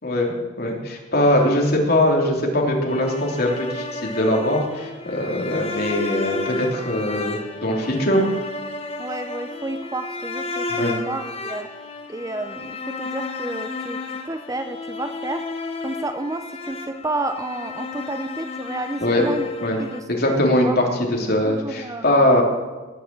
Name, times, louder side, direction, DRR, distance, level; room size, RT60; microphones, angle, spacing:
voice 1, 0.0-8.2 10.7-10.9 19.0-19.2 19.6-19.8 20.1-22.4, left 1 dB, 50° left, 0 dB, 3.2 m, -21 dB
sound 1, 2.9-20.0, left 3 dB, 30° left, 1.1 m, -33 dB
voice 2, 9.0-11.7 12.1-15.5 15.8-19.5 19.8-20.1 20.6-20.8 21.4-22.4, right 2 dB, 15° right, 8 dB, 0.6 m, -31 dB
18.5 x 6.9 x 8.6 m, 1.3 s
head